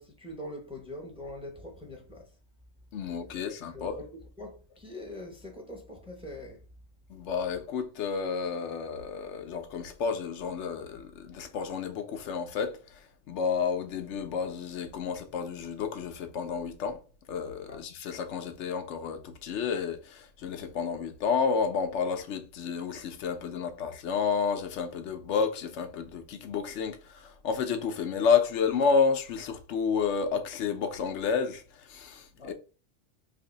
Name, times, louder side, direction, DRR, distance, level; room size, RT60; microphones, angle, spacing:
voice 1, 0.0-2.4 3.0-6.6 17.7-17.8 32.3-32.5, left 1 dB, 5° right, 0.7 m, -43 dB
voice 2, 2.9-3.9 7.1-12.8 13.3-17.0 17.3-27.0 27.4-31.6 31.9-32.5, left 6 dB, 90° left, 1.0 m, -30 dB
2.8 x 2.5 x 3.9 m
omnidirectional pair, 1.2 m